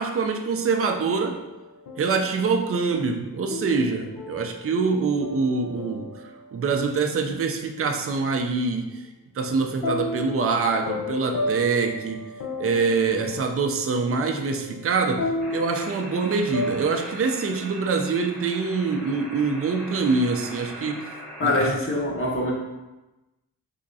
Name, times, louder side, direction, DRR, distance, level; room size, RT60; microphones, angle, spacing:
voice 1, 0.0-1.4 2.0-9.1 9.4-12.3 12.6-21.1 21.4-21.8, right 4 dB, 40° right, 4 dB, 0.4 m, -25 dB
sound 1, 1.2-2.4 3.5-6.7 9.8-16.9, left 2 dB, 70° left, 0.5 m, -33 dB
sound 2, 15.4-21.7, right 1 dB, ahead, 0.9 m, -40 dB
voice 2, 21.4-22.5, left 2 dB, 35° left, -3 dB, 0.9 m, -24 dB
3.5 x 2.9 x 2.6 m, 1.0 s
cardioid pair, 50°, 38 cm